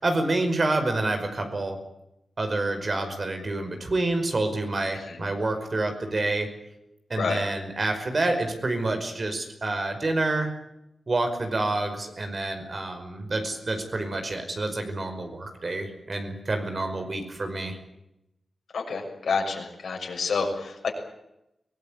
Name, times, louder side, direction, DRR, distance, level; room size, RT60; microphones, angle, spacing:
voice 1, 0.0-1.8 2.4-6.5 7.1-10.5 11.1-17.8, right 2 dB, 45° right, 6 dB, 5.3 m, -28 dB
voice 2, 18.7-20.9, left 4 dB, 80° left, 2 dB, 6.3 m, -28 dB
23.5 x 19.0 x 8.8 m, 0.87 s
wide cardioid pair, 80°, 0 cm